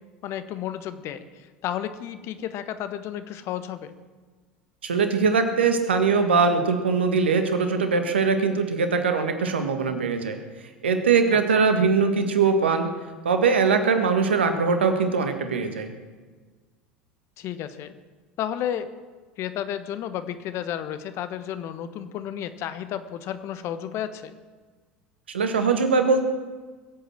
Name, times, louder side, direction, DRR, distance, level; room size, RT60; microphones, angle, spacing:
voice 1, 0.2-1.2 1.6-3.9 17.4-17.9 18.4-18.9 19.4-24.3, left 10 dB, 50° left, 11 dB, 1.3 m, -32 dB
voice 2, 4.8-10.4 10.8-12.9 13.2-15.9 25.3-26.2, right 5 dB, 80° right, 7 dB, 1.7 m, -21 dB
21.0 x 8.4 x 7.6 m, 1.4 s
hypercardioid pair, 75°, 6 cm